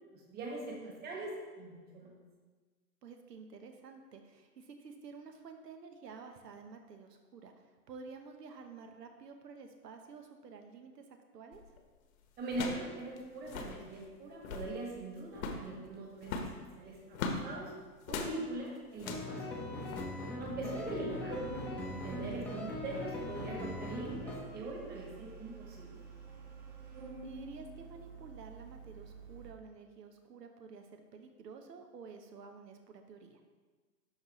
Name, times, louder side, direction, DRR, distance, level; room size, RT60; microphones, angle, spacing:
voice 1, 0.1-2.1 12.4-17.7 18.1-19.8 20.4-21.5 21.9-25.9, right 2 dB, 20° right, -1 dB, 1.5 m, -42 dB
voice 2, 3.0-11.6 20.9-21.0 26.9-33.4, right 4 dB, 80° right, 5 dB, 0.9 m, -51 dB
sound 1, 11.5-11.8 12.5-12.9 13.2-13.3 13.4-13.8 14.3-14.7 15.3-15.7 16.2-17.5 18.1-18.4 18.9-19.3 19.9-20.1, left 4 dB, 55° left, 1.1 m, -39 dB
sound 2, 19.0-24.4, left 1 dB, 5° left, 0.6 m, -40 dB
Organ, 20.4-29.5, right 4 dB, 50° right, 2.1 m, -48 dB
12.0 x 4.1 x 3.0 m, 1.4 s
hypercardioid pair, 130°, 47 cm